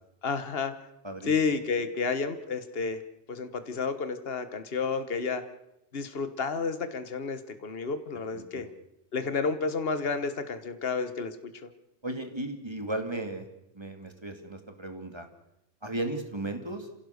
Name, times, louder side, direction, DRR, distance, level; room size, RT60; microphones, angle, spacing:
voice 1, 0.2-0.7 1.3-3.0 3.3-5.4 5.9-8.7 9.1-11.7, left 5 dB, 55° left, 10 dB, 1.6 m, -31 dB
voice 2, 8.3-8.7 12.0-13.5 13.7-15.3 15.8-16.9, right 1 dB, 20° right, 6 dB, 2.4 m, -35 dB
28.5 x 16.5 x 6.6 m, 0.86 s
omnidirectional pair, 1.2 m